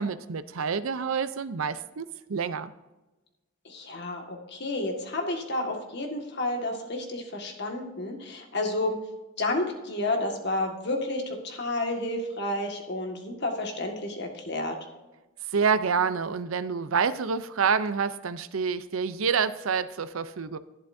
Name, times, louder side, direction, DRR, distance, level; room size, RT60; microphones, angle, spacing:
voice 1, 0.0-2.7 15.5-20.6, right 6 dB, 80° right, 13 dB, 0.6 m, -27 dB
voice 2, 3.7-9.0 9.4-14.8, left 2 dB, 55° left, 3 dB, 1.8 m, -31 dB
11.5 x 11.0 x 2.7 m, 1.1 s
head